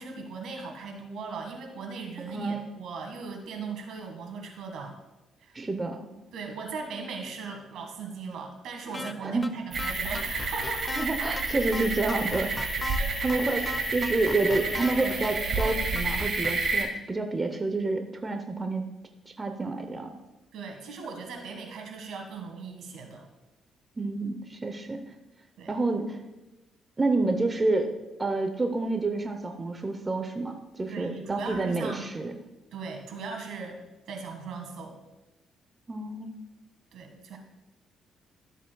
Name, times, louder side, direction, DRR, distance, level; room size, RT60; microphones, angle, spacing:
voice 1, 0.0-5.0 5.4-5.6 6.3-10.9 12.9-13.1 20.5-23.3 25.6-25.7 30.9-32.1 32.7-33.8 34.1-35.0 36.9-37.4, right 4 dB, 80° right, 3 dB, 1.7 m, -38 dB
voice 2, 2.3-2.6 5.5-6.0 9.2-9.5 10.9-12.7 13.2-18.8 19.4-20.1 24.0-25.1 25.7-26.2 27.0-27.9 28.2-32.4 35.9-36.3, right 2 dB, 25° right, 5 dB, 0.8 m, -29 dB
sound 1, 8.9-9.1 9.4-9.5 9.8-11.1 11.4-11.5 11.7-13.0 13.3-13.4 13.7-14.9 15.2-15.3 15.6-16.5, left 2 dB, 20° left, 0.5 m, -37 dB
sound 2, 9.7-16.8, right 3 dB, 50° right, 2.0 m, -30 dB
13.0 x 7.3 x 2.3 m, 1.0 s
cardioid pair, 90°, 0 cm